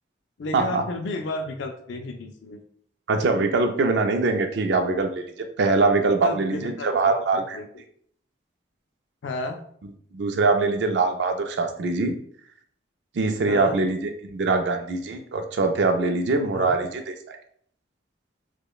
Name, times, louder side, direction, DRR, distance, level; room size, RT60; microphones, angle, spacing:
voice 1, 0.4-2.6 5.8-5.9 6.2-7.7 9.2-9.6 13.5-13.8 16.5-16.8, left 2 dB, 75° left, 5 dB, 0.4 m, -32 dB
voice 2, 3.1-5.2 5.6-7.6 10.1-12.1 13.2-17.4, right 3 dB, 65° right, 6 dB, 0.4 m, -23 dB
4.8 x 2.2 x 2.3 m, 0.62 s
head